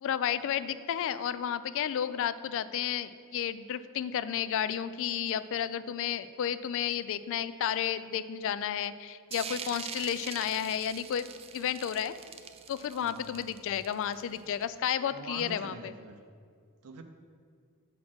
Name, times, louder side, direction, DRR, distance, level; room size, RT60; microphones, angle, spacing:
voice 1, 0.0-11.3 11.5-12.1 12.7-15.9, left 9 dB, 65° left, 15 dB, 0.3 m, -32 dB
sound 1, 9.3-14.6, right 7 dB, 30° right, 0.3 m, -43 dB
voice 2, 12.9-13.5 15.1-16.2 16.8-17.0, right 3 dB, 80° right, 6 dB, 0.5 m, -45 dB
6.1 x 4.2 x 6.0 m, 2.1 s
head